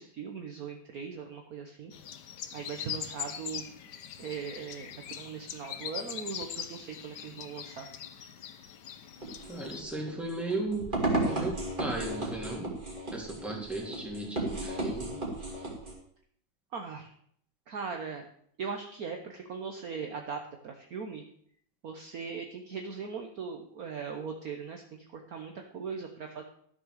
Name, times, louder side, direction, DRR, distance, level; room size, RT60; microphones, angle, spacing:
voice 1, 0.0-1.9 2.5-3.7 4.2-7.9 16.7-17.1 17.7-18.2 18.6-21.2 21.8-26.4, right 5 dB, 55° right, 4 dB, 1.4 m, -39 dB
sound 1, 1.9-9.8, left 9 dB, 65° left, 1.4 m, -42 dB
sound 2, 9.2-15.9, right 2 dB, 25° right, 2.9 m, -34 dB
voice 2, 9.5-10.9 11.3-12.7 13.1-15.1, right 2 dB, ahead, -3 dB, 3.2 m, -36 dB
13.5 x 6.7 x 6.6 m, 0.64 s
omnidirectional pair, 2.1 m